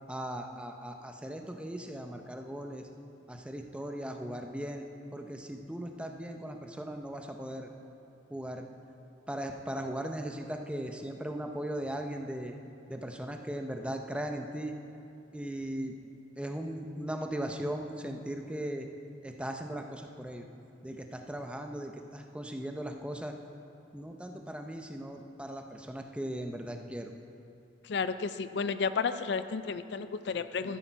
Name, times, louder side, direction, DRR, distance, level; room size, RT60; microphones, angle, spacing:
voice 1, 0.1-2.8 3.3-4.8 5.1-7.7 8.3-8.7 9.3-12.5 12.9-14.7 15.3-15.9 16.4-18.9 19.2-20.4 20.8-23.3 23.9-27.1, right 1 dB, 5° right, 4 dB, 0.6 m, -38 dB
voice 2, 27.9-30.8, left 5 dB, 65° left, 12 dB, 0.4 m, -32 dB
13.0 x 10.0 x 4.6 m, 2.8 s
head